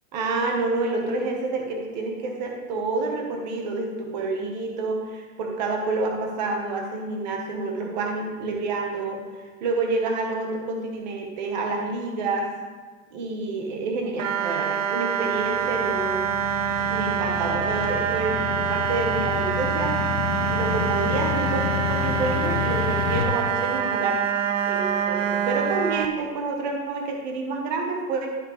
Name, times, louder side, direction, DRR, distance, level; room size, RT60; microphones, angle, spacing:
voice 1, 0.1-12.5 13.1-16.2 16.9-19.9 20.5-24.2 24.7-28.4, right 3 dB, 30° right, 1 dB, 1.0 m, -28 dB
sound 1, 14.2-26.1, right 8 dB, 60° right, 0.6 m, -26 dB
sound 2, 15.3-23.2, left 9 dB, 85° left, 1.1 m, -30 dB
11.5 x 5.8 x 3.1 m, 1.4 s
supercardioid pair, 180°, 43 cm